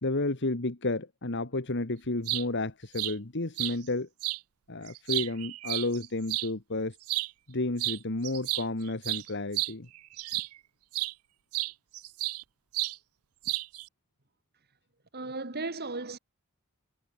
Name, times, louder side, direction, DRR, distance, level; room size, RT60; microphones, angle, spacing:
voice 1, 0.0-4.1 4.7-7.0 7.5-9.9, left 2 dB, 55° left, 1.8 m, -31 dB
sound 1, 2.0-2.4 3.0-3.1 3.6-3.8 4.2-4.4 4.9-6.5 7.0-7.3 7.8-8.0 8.2-10.6 10.9-11.1 11.5-12.4 12.7-13.0 13.4-13.9, right 19 dB, 90° right, 0.5 m, -32 dB
voice 2, 15.1-16.2, right 3 dB, 50° right, 2.7 m, -35 dB
head